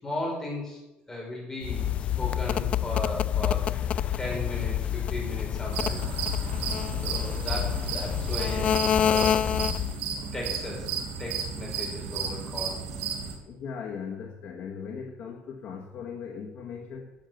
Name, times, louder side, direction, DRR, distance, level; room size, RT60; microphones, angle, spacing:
voice 1, 0.0-0.8 1.1-6.0 7.0-9.4 10.3-10.9 11.2-12.8, left 1 dB, 15° left, -2 dB, 4.8 m, -36 dB
sound 1, 1.6-10.0, left 10 dB, 40° left, 0.4 m, -27 dB
sound 2, 5.7-13.4, right 6 dB, 80° right, 2.9 m, -33 dB
voice 2, 13.4-17.1, left 6 dB, 55° left, 2 dB, 1.4 m, -38 dB
10.5 x 7.3 x 9.0 m, 0.95 s
cardioid pair, 155°, 3 cm